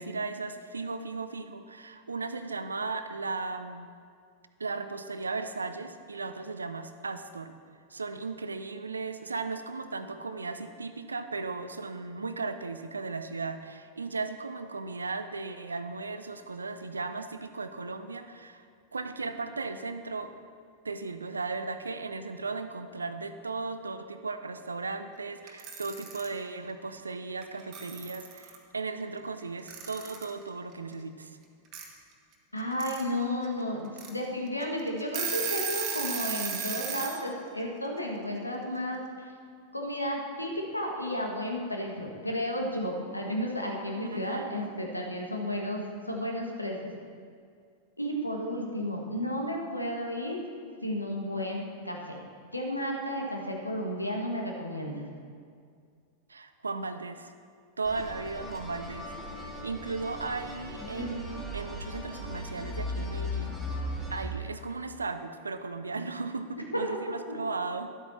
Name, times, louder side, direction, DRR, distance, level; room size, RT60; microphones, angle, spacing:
voice 1, 0.0-3.9 4.6-7.5 7.9-18.6 18.9-20.3 20.8-31.4 44.0-44.7 56.3-57.3 57.8-63.8 64.1-67.9, right 3 dB, 75° right, 10 dB, 0.5 m, -36 dB
Alarm / Clock, 25.5-26.3 27.4-27.5 27.7-28.6 29.7-30.3 31.7-31.8 32.6-33.0 33.4-33.5 34.0-34.1 34.6-34.7 35.0-37.2, right 7 dB, 40° right, 1.4 m, -34 dB
voice 2, 32.5-39.3 39.7-46.9 48.0-50.4 50.8-52.2 52.5-55.1, left 1 dB, 85° left, 0 dB, 1.5 m, -33 dB
sound 1, 57.8-64.2, left 1 dB, 5° right, 2.5 m, -37 dB
12.0 x 8.3 x 4.2 m, 2.2 s
figure-of-eight pair, 90°, 0 cm